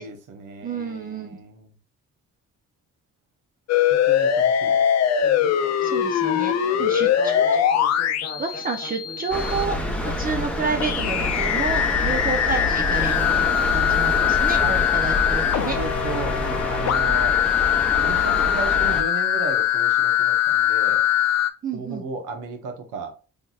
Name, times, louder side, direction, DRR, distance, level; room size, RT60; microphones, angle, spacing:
voice 1, 0.0-1.7 3.9-4.8 6.8-7.1 12.0-12.3 14.6-14.7 15.7-17.4 18.0-21.0 21.7-23.1, right 4 dB, 85° right, 1.1 m, -35 dB
voice 2, 0.6-1.3 5.8-7.6 8.4-9.8 10.2-15.8 21.6-22.1, right 4 dB, 30° right, 0.6 m, -30 dB
sound 1, 3.7-9.6 10.8-21.5, left 10 dB, 60° left, 0.5 m, -22 dB
Speech synthesizer, 5.2-13.5, left 2 dB, 35° left, 1.3 m, -40 dB
sound 2, 9.3-19.0, left 1 dB, 5° left, 0.9 m, -27 dB
4.0 x 3.3 x 2.4 m
cardioid pair, 90°, 30 cm